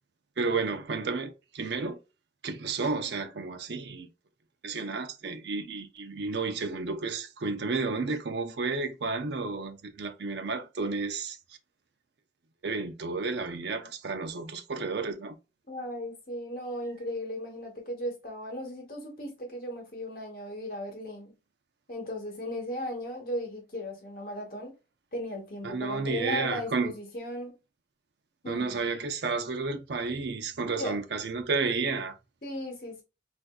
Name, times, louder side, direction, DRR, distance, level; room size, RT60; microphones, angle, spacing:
voice 1, 0.4-2.0 2.4-4.1 4.6-11.4 12.6-15.4 25.6-26.9 28.5-32.1, right 4 dB, 75° right, 0.5 m, -31 dB
voice 2, 15.7-21.3 21.9-24.7 25.1-27.6 28.4-28.8 30.8-31.0 32.4-33.0, left 1 dB, 55° left, 1.1 m, -36 dB
4.2 x 2.5 x 2.3 m
head